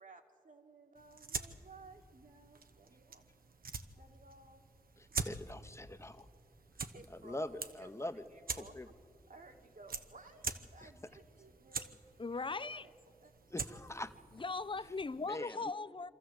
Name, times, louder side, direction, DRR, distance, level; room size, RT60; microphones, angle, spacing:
voice 1, 0.0-3.2 4.0-4.6 6.9-8.9 9.3-11.9 12.3-12.9 13.2-13.3, right 3 dB, 65° right, 1.9 m, -58 dB
sound 1, 0.9-15.3, right 4 dB, 80° right, 0.9 m, -46 dB
voice 2, 5.0-6.3 7.2-8.2 8.6-8.9 10.8-10.9 13.5-14.1 15.2-15.6, left 1 dB, 20° left, 0.9 m, -43 dB
voice 3, 12.2-12.8 14.3-16.1, left 3 dB, 35° left, 0.5 m, -39 dB
25.0 x 13.5 x 7.9 m
cardioid pair, 45°, 15 cm